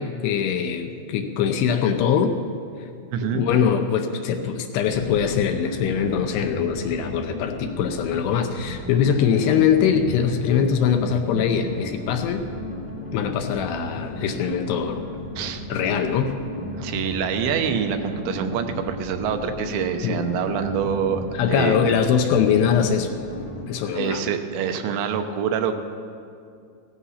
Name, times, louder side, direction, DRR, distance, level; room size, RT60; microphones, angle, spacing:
voice 1, 0.0-2.4 3.3-12.4 13.1-15.0 15.7-16.4 20.0-20.2 21.3-23.1 23.7-24.3, left 7 dB, 75° left, 5 dB, 2.7 m, -22 dB
voice 2, 3.1-3.5 15.4-15.6 16.7-22.0 24.0-25.7, right 7 dB, 80° right, 6 dB, 3.1 m, -26 dB
sound 1, 4.9-23.6, left 1 dB, 15° left, 2.4 m, -34 dB
17.0 x 14.5 x 5.7 m, 2.4 s
omnidirectional pair, 5.2 m